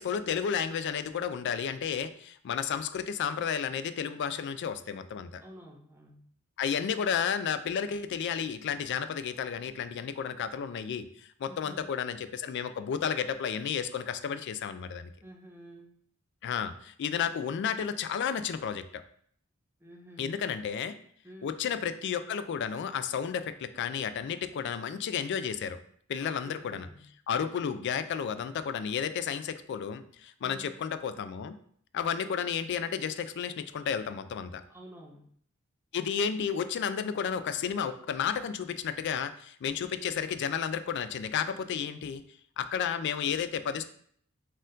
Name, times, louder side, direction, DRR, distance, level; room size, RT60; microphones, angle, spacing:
voice 1, 0.0-5.4 6.6-15.1 16.4-18.8 20.2-20.9 21.4-25.8 26.1-26.9 27.3-31.6 31.9-34.6 35.9-42.2 42.6-43.8, left 7 dB, 55° left, 11 dB, 0.3 m, -32 dB
voice 2, 5.4-6.3 11.5-11.9 15.2-16.0 19.8-20.4 21.2-21.6 26.2-27.1 30.4-30.8 34.7-35.3, equal, 10° right, 0 dB, 0.7 m, -50 dB
4.2 x 2.5 x 3.7 m, 0.63 s
head